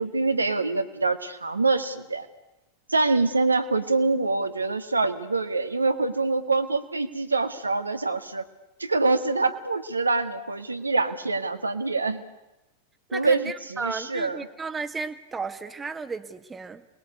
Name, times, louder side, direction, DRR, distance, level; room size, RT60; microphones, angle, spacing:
voice 1, 0.0-2.3 2.9-8.4 8.8-12.2 13.1-14.4, right 3 dB, 80° right, 7 dB, 2.0 m, -25 dB
voice 2, 13.1-16.9, right 4 dB, 15° right, 10 dB, 1.8 m, -34 dB
29.0 x 21.5 x 8.4 m, 0.98 s
figure-of-eight pair, 90°, 0 cm